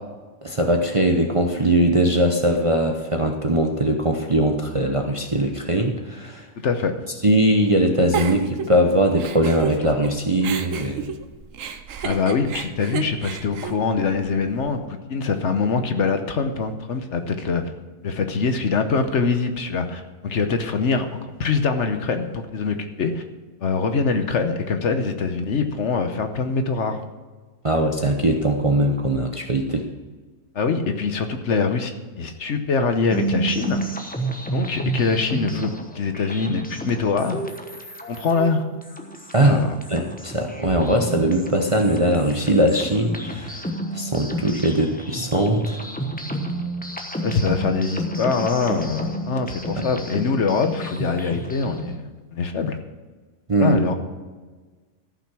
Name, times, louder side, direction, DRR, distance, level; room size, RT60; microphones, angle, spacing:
voice 1, 0.4-6.4 7.2-11.1 27.6-29.9 39.3-39.6 39.9-43.7 43.9-45.8 49.8-49.9 53.5-53.8, right 1 dB, 30° right, 3 dB, 0.7 m, -20 dB
Giggle, 8.1-10.1 10.4-14.6, right 6 dB, 70° right, 1.1 m, -31 dB
voice 2, 12.0-17.6 18.0-21.0 21.4-23.2 23.6-27.0 30.5-33.8 34.5-37.4 38.1-38.6 39.4-39.7 47.2-52.8 53.6-53.9, left 4 dB, 60° left, 7 dB, 1.1 m, -23 dB
sound 1, 33.1-52.0, right 1 dB, 5° left, 0.8 m, -31 dB
14.0 x 5.9 x 6.1 m, 1.3 s
omnidirectional pair, 1.5 m